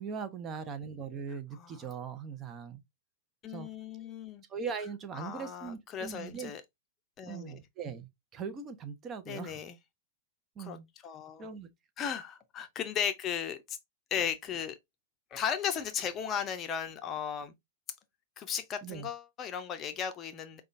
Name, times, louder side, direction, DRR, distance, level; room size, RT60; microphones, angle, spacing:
voice 1, 0.0-2.8 3.5-3.7 4.5-6.5 7.3-9.6 10.6-10.9 11.4-11.7 18.8-19.1, right 6 dB, 30° right, 0.7 m, -40 dB
voice 2, 1.5-1.9 3.4-4.4 5.1-6.6 7.2-7.6 9.3-9.8 10.6-10.8 11.0-11.5 12.0-13.8 14.1-14.8 15.3-17.5 18.4-20.6, left 8 dB, 30° left, 0.6 m, -36 dB
5.0 x 2.3 x 2.5 m
hypercardioid pair, 110°, 0 cm